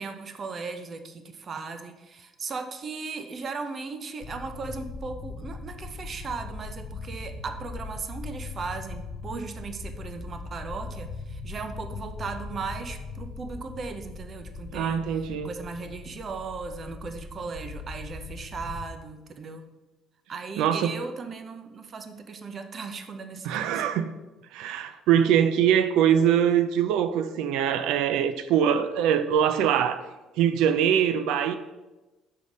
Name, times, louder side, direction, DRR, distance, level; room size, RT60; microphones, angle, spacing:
voice 1, 0.0-19.7 20.3-23.9, right 4 dB, 30° right, 0.6 m, -37 dB
sound 1, 4.2-18.9, left 3 dB, 45° left, 0.8 m, -40 dB
voice 2, 14.7-15.5 20.6-21.0 23.4-24.1 24.5-30.0 30.4-31.6, right 9 dB, 80° right, 0.4 m, -23 dB
6.3 x 5.5 x 5.0 m
cardioid pair, 160°, 0 cm